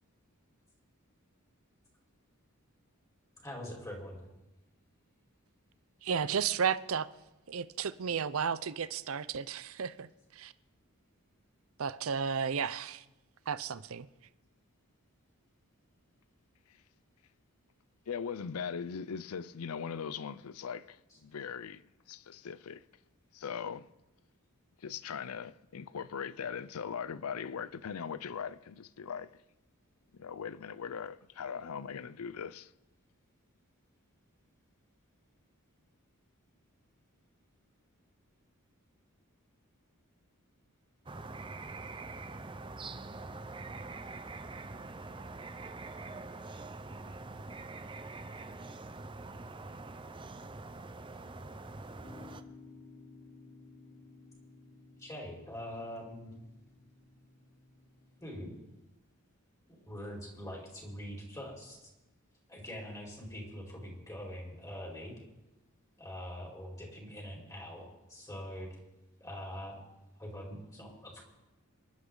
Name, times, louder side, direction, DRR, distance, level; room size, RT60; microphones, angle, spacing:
voice 1, 3.4-4.2 55.0-56.3 58.2-58.5 59.7-61.9 62.5-65.1 66.0-68.7 69.2-69.8 70.2-71.2, equal, 15° left, 4.7 m, -43 dB
voice 2, 6.0-7.1 7.5-10.1 10.3-10.5 11.8-13.0 13.5-14.1, right 6 dB, 70° right, 0.6 m, -33 dB
voice 3, 18.1-21.8 22.1-22.8 23.3-23.9 24.8-29.3 30.1-32.7, left 6 dB, 85° left, 0.5 m, -40 dB
sound 1, 41.1-52.4, right 3 dB, 25° right, 0.7 m, -44 dB
sound 2, 52.0-58.4, left 3 dB, 60° left, 4.6 m, -56 dB
27.0 x 11.5 x 3.9 m
head